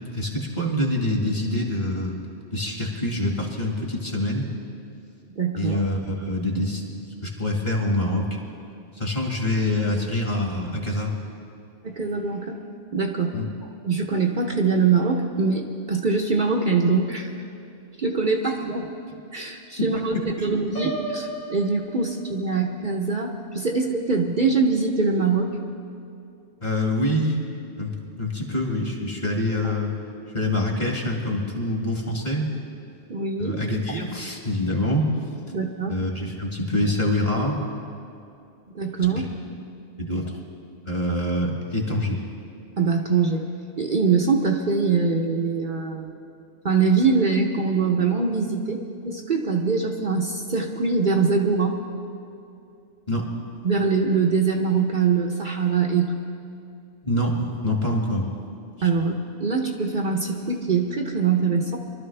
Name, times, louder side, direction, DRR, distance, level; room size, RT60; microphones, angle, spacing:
voice 1, 0.1-2.2 2.5-4.5 5.6-6.8 7.2-8.3 9.0-11.1 13.3-13.5 18.4-18.5 20.4-20.5 26.6-27.4 27.8-29.9 30.3-32.5 33.4-35.1 35.9-37.6 39.2-39.3 40.0-40.3 40.8-42.2 53.1-53.3 57.0-58.3, left 1 dB, 40° left, -1 dB, 2.1 m, -25 dB
voice 2, 5.4-5.8 11.8-12.6 12.9-13.3 13.6-17.3 18.0-18.9 19.3-20.1 20.4-25.5 33.1-33.6 35.5-36.0 38.7-39.3 42.8-43.4 43.8-46.1 46.6-51.8 53.6-56.1 58.8-61.8, right 4 dB, 45° right, 0 dB, 1.0 m, -23 dB
Piano, 20.8-22.7, right 2 dB, 90° left, 2.5 m, -34 dB
24.0 x 12.5 x 3.4 m, 2.6 s
omnidirectional pair, 1.2 m